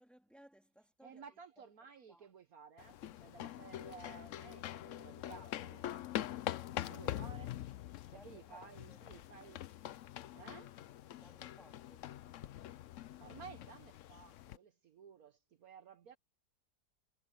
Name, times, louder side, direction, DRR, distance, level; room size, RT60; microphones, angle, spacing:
voice 1, 0.0-1.6 2.1-2.3 8.1-9.2 11.1-12.6, right 1 dB, ahead, 2.9 m, -63 dB
voice 2, 1.0-5.9 6.1-6.4 6.8-7.6 8.1-9.6 10.3-10.7 13.2-16.2, right 6 dB, 60° right, 1.5 m, -55 dB
sound 1, 2.8-14.6, left 12 dB, 65° left, 0.8 m, -44 dB
omnidirectional pair, 1.8 m